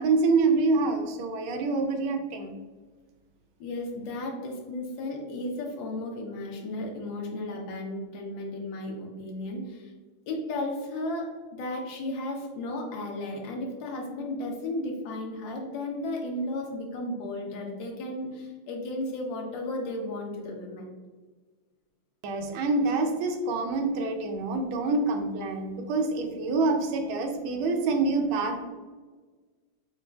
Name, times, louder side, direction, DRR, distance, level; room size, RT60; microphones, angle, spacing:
voice 1, 0.0-2.5 22.2-28.6, right 3 dB, 80° right, 4 dB, 1.4 m, -26 dB
voice 2, 3.6-9.9 10.3-20.9, left 1 dB, 70° left, 0 dB, 1.4 m, -34 dB
6.4 x 2.3 x 2.3 m, 1.4 s
omnidirectional pair, 2.4 m